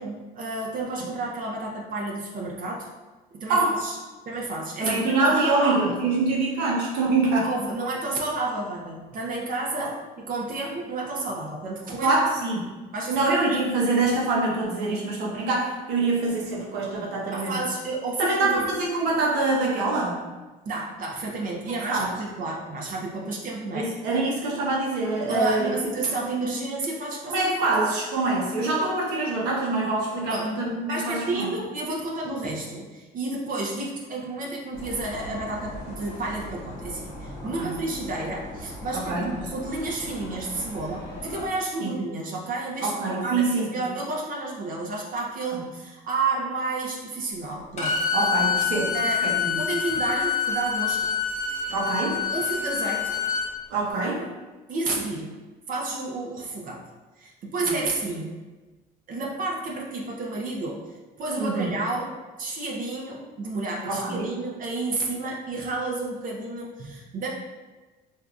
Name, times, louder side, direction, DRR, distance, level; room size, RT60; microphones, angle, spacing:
voice 1, 0.0-2.9 3.3-4.0 4.3-5.8 7.4-9.9 10.2-12.2 12.9-13.6 17.3-18.7 20.7-23.9 25.3-27.4 30.3-30.5 30.8-48.0 48.9-49.3 49.5-51.1 51.5-51.6 52.3-53.2 54.7-55.4 55.7-56.8 57.2-58.3 59.1-60.8 61.2-62.1 62.4-67.3, right 2 dB, 55° right, -1 dB, 0.6 m, -31 dB
voice 2, 4.8-7.5 9.8-9.9 12.0-12.7 13.1-17.6 18.2-20.2 21.9-22.1 23.7-25.7 27.3-31.5 37.4-37.7 38.9-39.3 41.8-42.0 42.8-43.7 45.5-45.6 48.1-48.9 49.2-49.6 51.7-52.2 53.7-54.3 57.7-57.8 61.4-61.7 63.8-64.4, right 3 dB, 85° right, -4 dB, 0.9 m, -25 dB
sound 1, 34.7-41.5, left 1 dB, 90° left, 0.8 m, -39 dB
Bowed string instrument, 47.8-53.5, left 6 dB, 45° left, 0.8 m, -26 dB
3.4 x 2.7 x 2.4 m, 1.2 s
cardioid pair, 110°, 17 cm